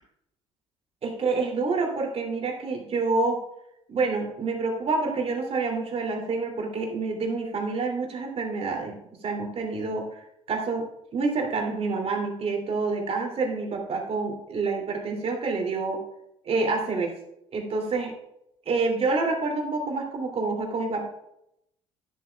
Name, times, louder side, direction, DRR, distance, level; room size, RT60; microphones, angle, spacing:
voice 1, 1.0-3.4 3.9-8.9 9.2-10.2 10.5-16.0 16.4-17.1 17.5-18.1 18.7-21.1, right 3 dB, 35° right, 1 dB, 2.8 m, -27 dB
11.5 x 11.0 x 2.3 m, 0.78 s
figure-of-eight pair, 55°, 16 cm